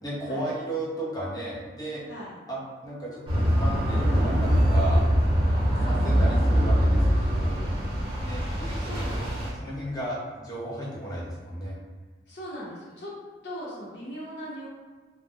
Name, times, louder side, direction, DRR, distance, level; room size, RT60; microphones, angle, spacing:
voice 1, 0.0-2.0 2.5-5.0 5.5-7.6 8.2-11.8, right 1 dB, 20° left, -7 dB, 0.7 m, -35 dB
sound 1, 3.3-9.5, equal, 30° right, 1.0 m, -23 dB
voice 2, 5.7-6.0 8.8-9.5 12.3-13.1 13.4-14.7, equal, 75° left, -7 dB, 1.0 m, -39 dB
2.4 x 2.1 x 3.5 m, 1.4 s
head